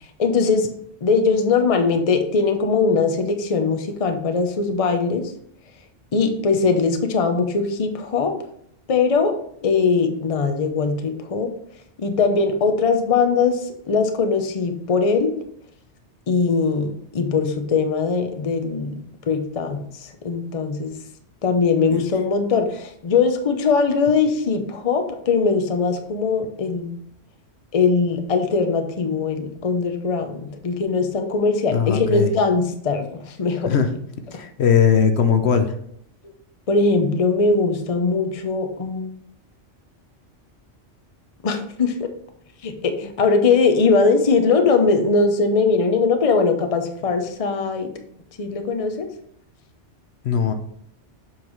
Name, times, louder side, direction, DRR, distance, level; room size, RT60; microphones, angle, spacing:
voice 1, 0.2-0.7 1.0-5.3 6.1-8.3 8.9-9.3 9.6-11.5 12.0-15.3 16.3-20.9 21.4-26.9 27.7-33.7 34.3-34.4 36.7-39.1 41.4-42.1 42.6-47.9 48.4-49.1, left 4 dB, 35° left, 6 dB, 0.7 m, -21 dB
voice 2, 31.7-32.3 33.6-33.9 34.3-35.7 50.2-50.5, left 7 dB, 70° left, 7 dB, 0.9 m, -19 dB
7.4 x 5.6 x 3.1 m, 0.68 s
omnidirectional pair, 1.2 m